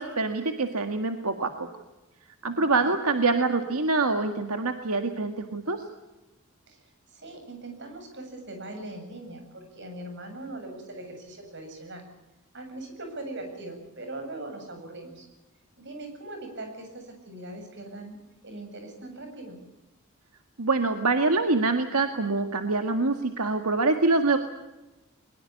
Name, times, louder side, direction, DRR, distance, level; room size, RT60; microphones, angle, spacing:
voice 1, 0.0-1.5 2.4-5.8 20.6-24.4, right 3 dB, 80° right, 6 dB, 1.8 m, -25 dB
voice 2, 2.5-2.9 6.7-6.8 7.1-12.0 12.5-15.3 15.8-18.2 18.4-19.6, right 2 dB, 50° right, 5 dB, 7.6 m, -40 dB
22.0 x 22.0 x 8.4 m, 1.0 s
head